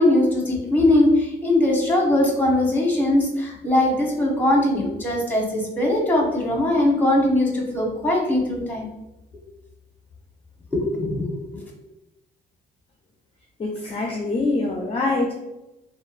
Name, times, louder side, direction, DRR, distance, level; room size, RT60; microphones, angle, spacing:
voice 1, 0.0-8.9 10.7-11.3 11.5-11.6, left 1 dB, 10° left, -2 dB, 0.9 m, -20 dB
voice 2, 13.6-15.4, left 2 dB, 30° left, 0 dB, 0.4 m, -24 dB
2.9 x 2.1 x 2.5 m, 0.98 s
cardioid pair, 90°, 20 cm